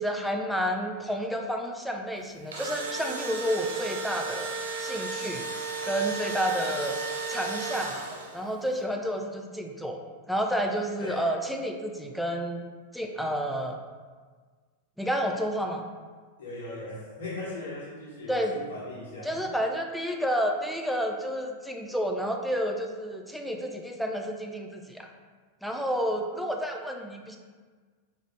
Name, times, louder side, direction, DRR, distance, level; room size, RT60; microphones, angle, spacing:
voice 1, 0.0-4.5 4.8-5.4 5.8-7.0 7.3-8.0 8.3-10.0 10.3-12.6 12.9-13.8 15.0-15.8 18.3-18.6 19.2-25.1 25.6-27.4, equal, ahead, 2 dB, 0.4 m, -30 dB
Engine / Drill, 2.3-8.5, right 4 dB, 65° right, 0.5 m, -34 dB
voice 2, 11.0-11.3 16.4-19.4, left 2 dB, 65° left, -6 dB, 1.4 m, -38 dB
3.9 x 3.0 x 3.1 m, 1.5 s
figure-of-eight pair, 90°, 0 cm